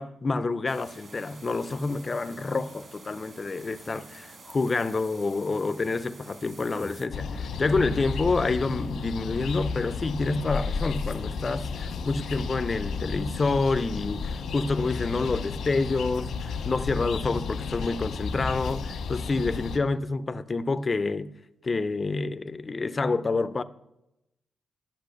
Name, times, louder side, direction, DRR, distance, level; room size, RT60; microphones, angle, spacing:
voice 1, 0.0-21.3 21.6-23.6, left 3 dB, 30° left, 0.4 m, -28 dB
sound 1, 0.7-7.1, right 3 dB, 45° right, 1.5 m, -49 dB
sound 2, 7.1-19.8, left 5 dB, 90° left, 1.2 m, -33 dB
10.5 x 6.0 x 6.4 m
wide cardioid pair, 140°, 0 cm